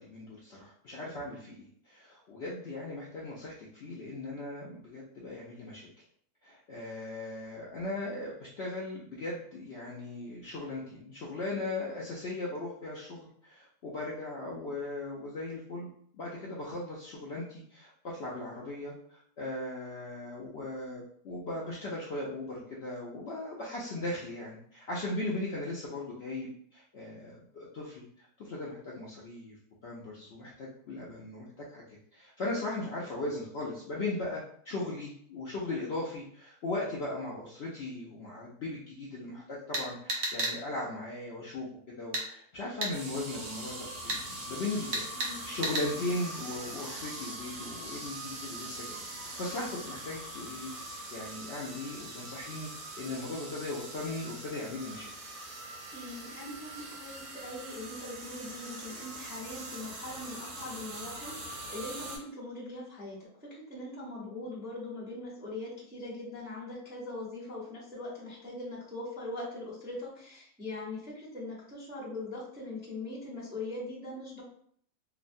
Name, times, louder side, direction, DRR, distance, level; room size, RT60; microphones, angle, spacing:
voice 1, 0.0-5.9 6.4-15.9 16.1-29.6 29.8-31.8 32.1-52.7 53.0-55.1, left 2 dB, 65° left, -5 dB, 0.6 m, -38 dB
sound 1, 39.7-40.5 42.1-42.3 42.8-42.9 44.1-44.2 44.9-45.3 45.6-45.9, right 2 dB, 60° right, 0.9 m, -31 dB
sound 2, 42.9-62.2, right 1 dB, 85° right, 1.4 m, -43 dB
voice 2, 45.1-45.5 55.9-63.2 63.4-74.4, left 2 dB, 10° right, -7 dB, 0.5 m, -41 dB
3.1 x 2.1 x 2.5 m, 0.63 s
omnidirectional pair, 1.6 m